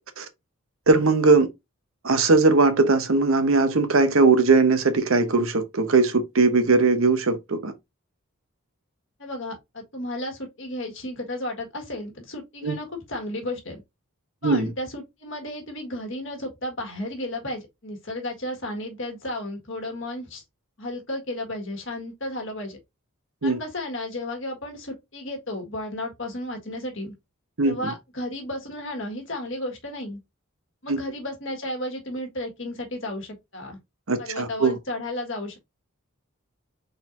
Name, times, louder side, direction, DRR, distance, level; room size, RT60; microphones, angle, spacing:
voice 1, 0.9-1.5 2.0-7.7 12.6-12.7 14.4-14.7 23.4-23.6 27.6-27.9 30.9-31.0 34.1-34.8, right 3 dB, 70° right, 0.9 m, -19 dB
voice 2, 9.2-13.8 14.4-20.4 20.8-22.8 23.4-27.1 27.6-30.2 30.8-33.8 34.2-35.6, left 1 dB, 60° left, 1.5 m, -33 dB
4.4 x 4.0 x 2.5 m
head